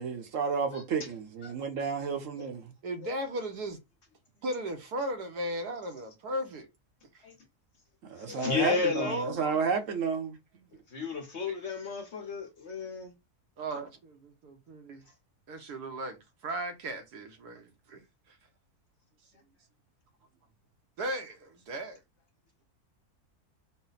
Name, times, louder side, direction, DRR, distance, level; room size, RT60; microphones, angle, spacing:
voice 1, 0.0-2.7 8.1-10.7, right 5 dB, 60° right, 1.1 m, -31 dB
voice 2, 2.8-3.8 4.4-6.7 7.1-7.2 8.3-9.5 13.6-15.1 15.5-18.0 18.3-18.4 21.0-22.0, right 1 dB, 85° right, 1.5 m, -37 dB
voice 3, 8.2-9.3 10.7-13.1, left 5 dB, 50° left, 1.1 m, -33 dB
4.1 x 2.2 x 3.9 m
omnidirectional pair, 1.6 m